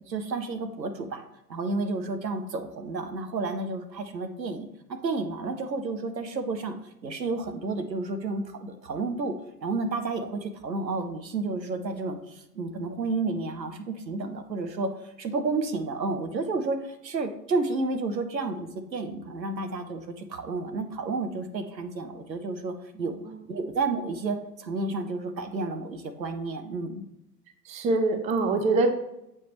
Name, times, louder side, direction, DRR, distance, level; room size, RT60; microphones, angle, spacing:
voice 1, 0.1-1.2 1.5-6.7 7.0-9.4 9.6-14.9 15.2-23.2 23.5-27.0, right 3 dB, 85° right, 8 dB, 0.9 m, -31 dB
voice 2, 27.7-28.9, right 3 dB, 15° right, 6 dB, 0.5 m, -24 dB
7.4 x 5.4 x 3.0 m, 0.84 s
figure-of-eight pair, 95°, 49 cm